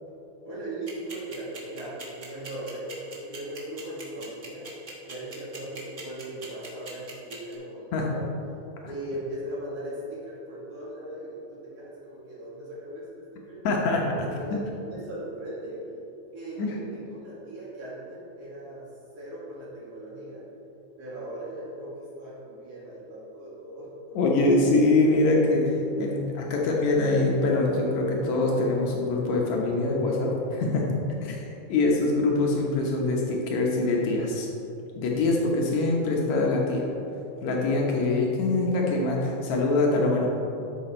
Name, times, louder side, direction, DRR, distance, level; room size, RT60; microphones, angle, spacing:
voice 1, 0.4-4.7 5.1-8.3 8.8-13.6 14.2-15.8 16.3-18.9 19.2-20.4 21.0-21.9 22.2-24.2, right 1 dB, 55° right, -7 dB, 3.1 m, -38 dB
sound 1, 0.9-7.5, right 4 dB, 75° right, 0.6 m, -41 dB
voice 2, 13.6-14.0 16.6-16.8 24.1-30.9 31.2-31.4 31.7-34.5 35.0-36.9 37.4-40.3, left 2 dB, 70° left, -2 dB, 2.2 m, -24 dB
11.0 x 6.9 x 4.3 m, 3.0 s
omnidirectional pair, 3.6 m